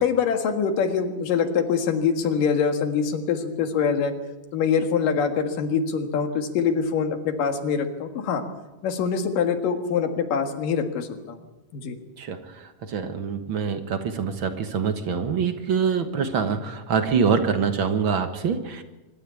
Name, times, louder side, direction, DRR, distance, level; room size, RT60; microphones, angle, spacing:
voice 1, 0.0-4.1 4.5-8.4 8.8-11.4 11.7-12.0, left 6 dB, 85° left, 6 dB, 3.3 m, -24 dB
voice 2, 12.9-18.8, right 6 dB, 55° right, 8 dB, 1.5 m, -25 dB
24.5 x 13.0 x 8.5 m, 1.1 s
omnidirectional pair, 3.7 m